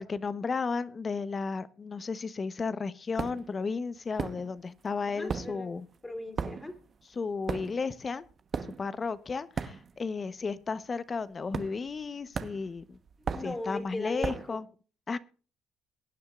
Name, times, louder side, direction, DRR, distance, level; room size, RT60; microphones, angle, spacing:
voice 1, 0.0-5.9 7.1-8.2 8.8-13.0 13.4-14.7 15.1-15.2, left 4 dB, 35° left, 15 dB, 1.1 m, -34 dB
sound 1, 3.2-3.6 4.2-4.8 5.1-10.2 10.5-10.8 11.5-12.0 12.3-14.6, right 5 dB, 45° right, 1.1 m, -37 dB
voice 2, 5.1-5.7 6.0-6.8 13.3-14.6, left 2 dB, 15° left, 5 dB, 3.3 m, -38 dB
22.5 x 9.5 x 2.5 m, 0.38 s
supercardioid pair, 80°, 0 cm